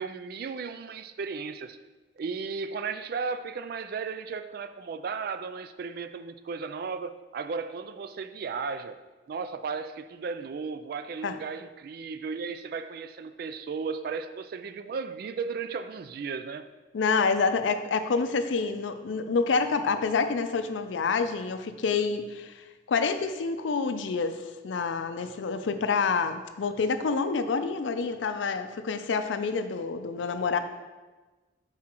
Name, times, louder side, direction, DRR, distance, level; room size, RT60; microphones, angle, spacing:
voice 1, 0.0-1.8 2.2-9.0 9.3-16.6, right 5 dB, 55° right, 0.3 m, -35 dB
voice 2, 16.9-30.6, left 4 dB, 85° left, 0.4 m, -28 dB
7.3 x 4.8 x 3.0 m
head